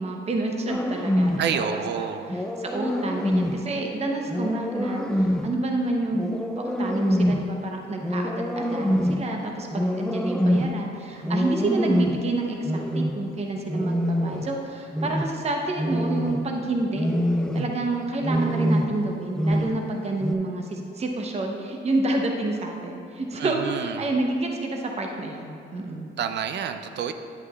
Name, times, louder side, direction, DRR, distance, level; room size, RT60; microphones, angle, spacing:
voice 1, 0.0-6.3 6.6-17.1 17.5-26.1, right 2 dB, 30° right, 1 dB, 0.8 m, -29 dB
sound 1, 0.7-1.5 2.3-3.6 4.3-5.6 6.1-7.5 8.0-9.3 9.7-10.8 11.2-12.3 12.7-13.2 13.7-14.6 14.9-15.4 15.8-16.5 17.0-17.8 18.2-19.1 19.4-19.9 20.2-20.3, equal, 5° left, 0.4 m, -25 dB
voice 2, 1.4-2.3 23.4-24.1 26.2-27.1, right 7 dB, 60° right, 8 dB, 0.5 m, -28 dB
10.0 x 8.1 x 2.4 m, 2.5 s
cardioid pair, 90°, 20 cm